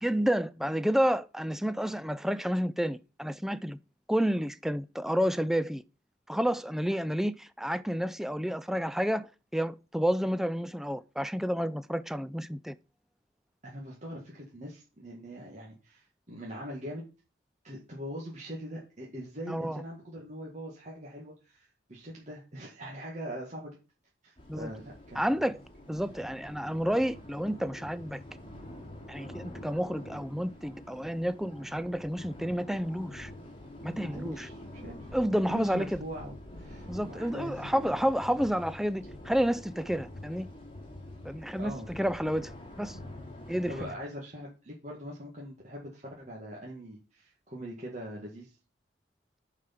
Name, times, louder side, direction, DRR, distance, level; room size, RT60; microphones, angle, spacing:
voice 1, 0.0-3.8 4.1-5.8 6.3-12.8 19.5-19.8 24.5-24.7 25.2-25.6 25.9-28.2 29.1-33.3 33.8-34.5 35.1-36.0 36.9-40.5 41.2-42.5 42.8-43.0 43.5-43.7, equal, ahead, 0.4 m, -30 dB
voice 2, 13.6-17.0 17.6-23.8 24.2-25.3 34.1-35.1 35.5-37.9 41.6-41.9 43.7-48.5, equal, 40° right, 2.0 m, -42 dB
sound 1, 24.4-43.9, left 1 dB, 30° left, 2.3 m, -46 dB
9.5 x 4.9 x 5.9 m
head